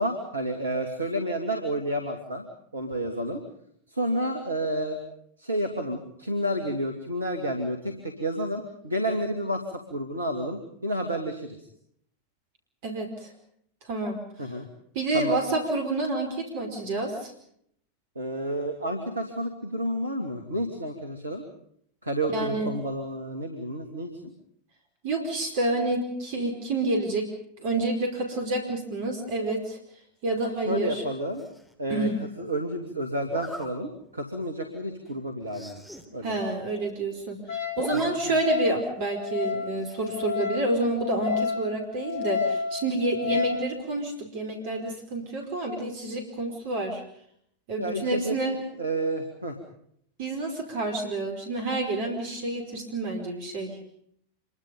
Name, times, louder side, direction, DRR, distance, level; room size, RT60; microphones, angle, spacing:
voice 1, 0.0-2.4 2.7-3.4 3.9-5.0 5.4-11.6 14.4-14.7 15.1-15.3 18.2-21.4 22.0-24.3 30.6-31.4 31.8-32.1 32.4-35.8 36.1-36.4 37.9-38.4 43.3-43.4 47.8-48.4 48.8-49.6, right 1 dB, 75° right, 5 dB, 2.5 m, -30 dB
voice 2, 12.8-13.3 13.9-14.2 14.9-17.3 22.3-22.7 25.0-27.3 27.6-29.8 30.2-31.0 31.9-32.2 36.2-37.4 37.8-47.0 47.7-48.6 50.2-53.7, right 2 dB, 50° right, 3 dB, 5.0 m, -28 dB
Zipper (clothing), 31.4-31.7 33.3-33.7 34.2-34.4 34.7-34.8 35.1-35.2 35.4-36.1 36.4-36.5 36.7-37.2 37.6-38.1 38.4-38.5 39.8-40.2, equal, ahead, 3.3 m, -40 dB
Wind instrument woodwind instrument, 37.5-43.6, left 6 dB, 45° left, 5.5 m, -31 dB
26.5 x 23.5 x 5.5 m, 0.68 s
figure-of-eight pair, 90°, 0 cm